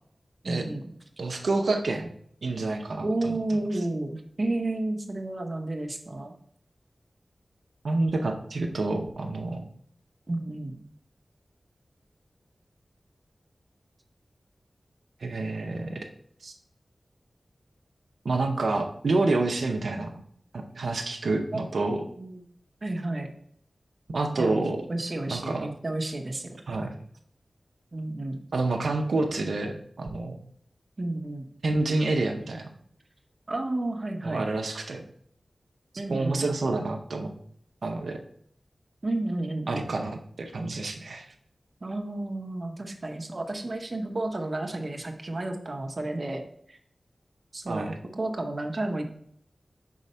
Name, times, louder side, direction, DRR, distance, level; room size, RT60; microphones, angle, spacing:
voice 1, 0.4-0.9 3.0-6.4 10.3-10.8 21.5-22.4 22.8-23.3 24.3-24.6 24.9-26.6 27.9-28.4 31.0-31.5 33.5-34.5 36.0-36.8 39.0-39.9 41.8-46.4 46.7-46.8 47.5-49.1, right 2 dB, 40° right, 3 dB, 0.9 m, -31 dB
voice 2, 1.2-2.1 2.4-3.3 7.8-9.6 15.2-16.0 16.4-16.5 18.2-20.2 20.5-22.0 24.1-24.8 25.3-25.7 26.7-26.9 28.5-30.4 31.6-32.7 34.2-35.0 36.1-37.3 37.8-38.2 39.7-41.3 47.7-48.0, right 2 dB, 90° right, 3 dB, 0.6 m, -28 dB
4.7 x 4.2 x 5.5 m, 0.65 s
wide cardioid pair, 95°, 0 cm